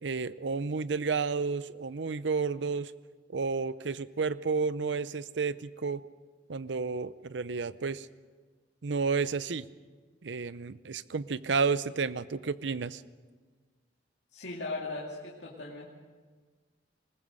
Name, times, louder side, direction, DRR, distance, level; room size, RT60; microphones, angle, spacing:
voice 1, 0.0-2.9 3.3-6.0 6.5-8.1 8.8-9.6 10.2-13.0, right 5 dB, 85° right, 16 dB, 0.6 m, -31 dB
voice 2, 14.3-15.9, left 3 dB, 80° left, -4 dB, 2.4 m, -38 dB
20.5 x 20.0 x 6.4 m, 1.4 s
head